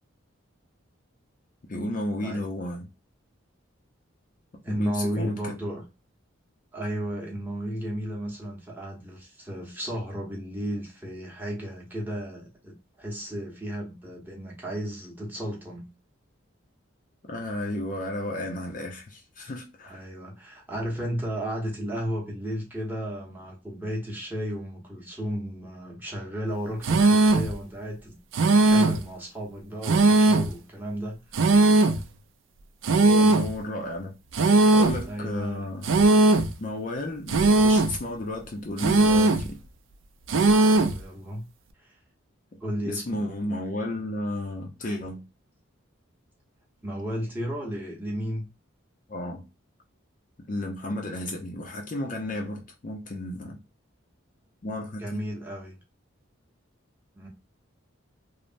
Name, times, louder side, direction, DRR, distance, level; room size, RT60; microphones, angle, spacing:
voice 1, 1.7-2.9 4.7-5.6 17.3-20.1 33.0-34.1 34.7-35.9 36.6-39.6 42.5-42.6 42.9-45.3 49.1-49.4 50.4-53.6 54.6-55.2, left 1 dB, 40° left, 0.5 m, -33 dB
voice 2, 4.6-5.8 6.7-15.9 19.9-28.2 28.5-32.0 35.0-35.7 40.6-41.5 41.8-42.0 42.6-43.2 46.8-48.5 55.0-55.8 57.1-57.3, equal, 10° right, 0.8 m, -34 dB
sound 1, 26.8-27.5 28.3-29.1 29.8-30.6 31.3-32.0 32.8-33.5 34.3-35.0 35.8-36.5 37.3-38.0 38.8-39.5 40.3-41.0, right 2 dB, 70° right, 0.4 m, -19 dB
3.1 x 2.0 x 2.5 m
head